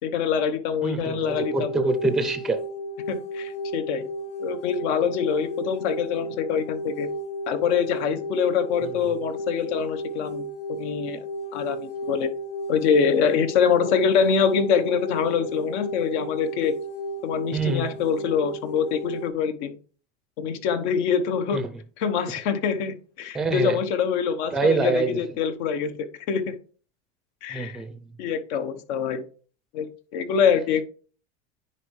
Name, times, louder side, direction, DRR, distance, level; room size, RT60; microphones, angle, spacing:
voice 1, 0.0-1.7 3.1-4.1 4.4-7.1 7.5-11.2 11.5-12.3 12.7-16.7 17.2-19.8 20.4-21.6 22.0-25.9 26.3-26.6 27.4-27.8 28.2-29.2 29.7-30.8, left 7 dB, 75° left, 1.1 m, -25 dB
voice 2, 0.8-2.6 17.5-17.9 21.5-21.7 23.3-23.8 24.5-25.2 27.5-28.0, right 3 dB, ahead, 0.5 m, -25 dB
sound 1, 1.3-19.3, equal, 60° left, 2.1 m, -34 dB
10.0 x 4.5 x 3.2 m
supercardioid pair, 135°, 35 cm